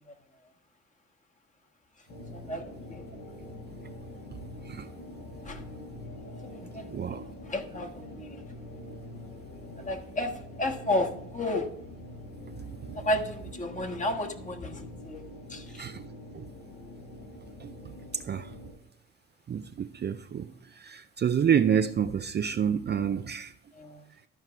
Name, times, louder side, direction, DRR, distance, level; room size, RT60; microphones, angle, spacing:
sound 1, 2.1-18.7, left 1 dB, 80° left, 4.6 m, -44 dB
voice 1, 2.3-3.1 5.4-5.6 6.4-8.4 9.8-11.7 12.9-15.2 15.5-15.8 23.7-24.1, left 1 dB, 25° left, 1.4 m, -33 dB
voice 2, 4.3-4.9 6.9-7.3 12.5-13.0 15.7-16.5 17.6-17.8 18.1-18.7 19.5-23.5 24.1-24.2, right 8 dB, 35° right, 0.4 m, -29 dB
12.5 x 4.7 x 5.7 m
cardioid pair, 90°, 30 cm